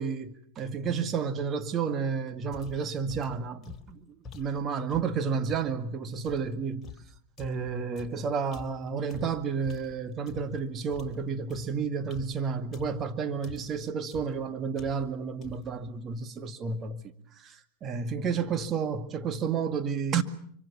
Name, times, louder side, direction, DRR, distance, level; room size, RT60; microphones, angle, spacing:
voice 1, 0.0-6.9 7.4-17.0 17.4-20.2, right 6 dB, 35° right, 2.0 m, -31 dB
sound 1, 2.5-5.7 6.2-10.6 10.9-13.1 13.4-13.8 14.1-14.4 14.7-15.2 15.4-15.8, left 5 dB, 25° left, 3.4 m, -47 dB
25.0 x 24.5 x 7.1 m
hypercardioid pair, 110°, 0 cm